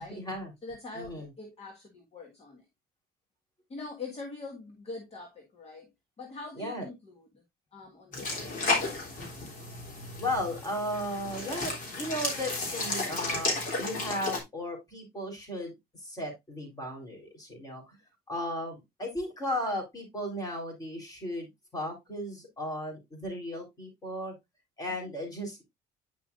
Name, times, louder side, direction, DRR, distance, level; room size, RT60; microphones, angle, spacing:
voice 1, 0.0-0.5 0.9-1.3 6.6-6.9 10.2-18.0 18.3-24.3 24.8-25.6, left 1 dB, 20° left, 3.8 m, -35 dB
voice 2, 0.6-2.7 3.7-5.9 6.2-7.4 7.7-9.4 25.1-25.2, left 3 dB, 35° left, 1.7 m, -44 dB
sound 1, 8.1-14.4, left 2 dB, 55° left, 3.3 m, -33 dB
9.1 x 5.7 x 2.5 m
cardioid pair, 110°, 17 cm